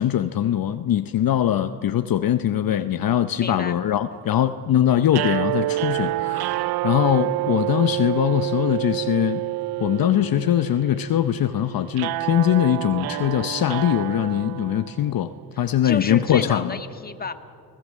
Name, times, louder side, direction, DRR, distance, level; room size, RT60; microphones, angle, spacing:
voice 1, 0.0-9.4 9.8-16.8, left 11 dB, 55° left, 10 dB, 0.8 m, -22 dB
voice 2, 3.4-3.8 15.5-17.3, left 4 dB, 20° left, 8 dB, 1.5 m, -31 dB
sound 1, 5.1-15.3, right 17 dB, 65° right, 0.5 m, -28 dB
30.0 x 18.0 x 7.5 m, 2.4 s
cardioid pair, 75°, 41 cm